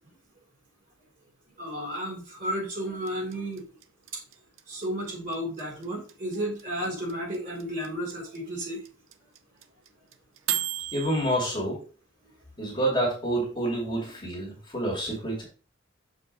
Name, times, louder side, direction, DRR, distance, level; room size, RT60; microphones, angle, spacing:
voice 1, 1.6-3.6 4.1-4.2 4.7-8.8, equal, 40° right, -3 dB, 3.9 m, -33 dB
sound 1, 3.1-11.4, right 13 dB, 70° right, 0.7 m, -33 dB
voice 2, 10.9-11.8 12.6-15.4, right 1 dB, 25° left, -2 dB, 2.5 m, -28 dB
7.0 x 4.9 x 3.9 m, 0.37 s
head